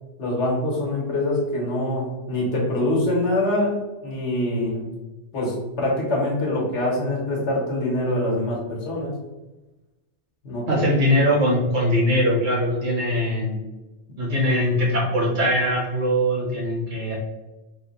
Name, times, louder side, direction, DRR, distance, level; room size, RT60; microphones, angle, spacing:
voice 1, 0.2-3.7 4.0-4.9 5.3-9.2 10.4-11.2, left 1 dB, 85° left, -3 dB, 1.4 m, -24 dB
voice 2, 10.7-13.6 14.2-17.2, equal, 45° right, -2 dB, 1.1 m, -21 dB
3.8 x 2.1 x 4.0 m, 1.1 s
omnidirectional pair, 1.2 m